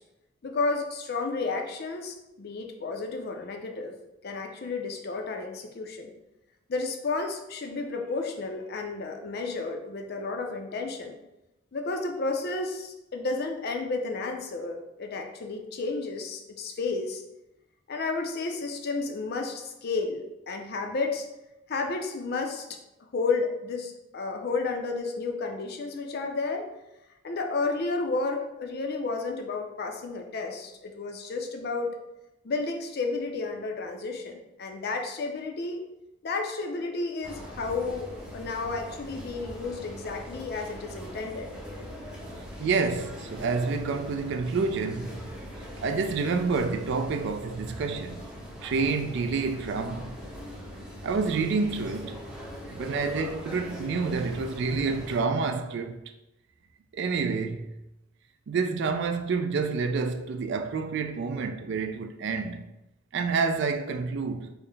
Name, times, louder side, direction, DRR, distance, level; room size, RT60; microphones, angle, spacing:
voice 1, 0.4-3.9 4.2-6.1 6.7-11.2 11.7-17.2 17.9-21.3 21.7-22.7 23.1-26.7 27.2-31.9 32.4-35.8 36.2-41.5, left 3 dB, 50° left, 0.5 m, -32 dB
Train station ambience., 37.2-55.2, equal, 5° right, 0.6 m, -41 dB
voice 2, 42.6-45.3 45.8-48.3 48.6-50.2 51.0-52.2 52.7-56.0 56.9-57.8 58.5-62.7 63.1-64.5, right 4 dB, 60° right, 0.3 m, -28 dB
4.6 x 2.1 x 3.2 m
head